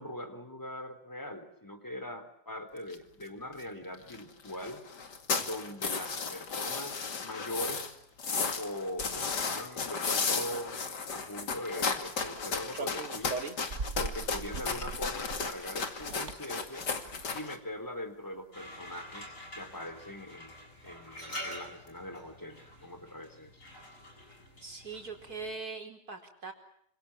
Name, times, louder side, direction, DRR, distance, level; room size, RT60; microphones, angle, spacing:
voice 1, 0.0-4.8 5.4-8.0 8.6-10.8 11.1-13.4 13.9-16.9 17.3-20.5 20.8-23.6, left 1 dB, 10° left, 9 dB, 3.8 m, -41 dB
sound 1, 2.9-3.0 3.2-3.3 3.5-3.6 3.9-4.2 4.4-7.9 8.2-17.6, left 5 dB, 85° left, 2.9 m, -34 dB
sound 2, 11.8-12.4 12.7-17.4, right 4 dB, 45° right, 1.9 m, -40 dB
sound 3, 18.5-25.5, equal, 50° left, 8.3 m, -46 dB
voice 2, 24.3-26.5, right 4 dB, 60° right, 4 dB, 5.0 m, -42 dB
27.5 x 26.5 x 7.3 m, 0.71 s
omnidirectional pair, 1.8 m